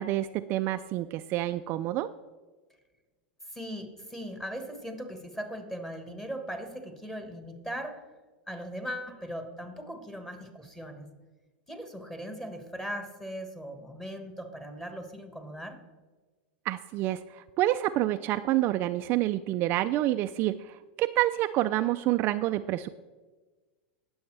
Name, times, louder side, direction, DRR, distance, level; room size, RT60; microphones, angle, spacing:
voice 1, 0.0-2.1 16.7-22.9, right 15 dB, 40° right, 9 dB, 0.4 m, -28 dB
voice 2, 3.5-8.1 8.5-11.1 11.7-15.8, equal, 5° left, 6 dB, 1.5 m, -39 dB
18.5 x 7.1 x 3.3 m, 1.3 s
supercardioid pair, 125°, 6 cm